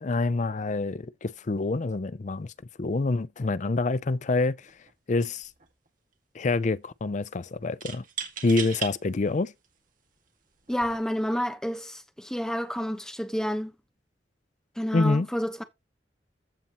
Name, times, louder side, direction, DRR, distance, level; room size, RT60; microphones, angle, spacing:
voice 1, 0.0-2.5 2.8-4.7 5.1-5.5 6.3-8.0 8.4-9.5 14.9-15.3, left 3 dB, 45° left, 0.5 m, -26 dB
sound 1, 4.7-4.9 5.2-5.9 7.8-8.9 9.6-9.7 10.6-11.0, right 8 dB, 50° right, 2.0 m, -36 dB
voice 2, 10.7-13.7 14.8-15.6, equal, 5° left, 1.0 m, -29 dB
15.0 x 5.6 x 3.0 m
head